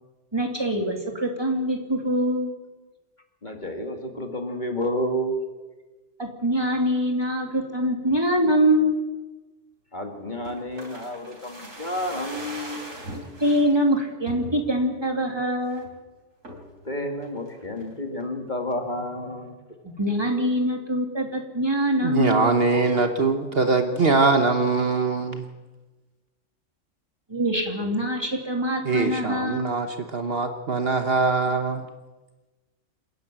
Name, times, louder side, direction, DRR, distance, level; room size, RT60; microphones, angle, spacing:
voice 1, 0.3-2.5 6.2-9.0 13.4-15.9 19.8-22.5 27.3-29.7, equal, 20° right, 2 dB, 2.8 m, -24 dB
voice 2, 3.4-5.4 9.9-13.0 16.8-19.5, equal, 35° left, 4 dB, 2.2 m, -30 dB
sound 1, 10.4-13.7 14.3-14.9 15.3-15.4 15.6-16.0 16.4-16.8 17.2-17.9 18.2-18.3, right 1 dB, 90° right, 4.1 m, -40 dB
voice 3, 22.0-25.4 28.8-29.9 30.1-31.8, right 3 dB, 50° right, 6 dB, 1.3 m, -22 dB
28.0 x 10.5 x 8.8 m, 1.2 s
omnidirectional pair, 1.3 m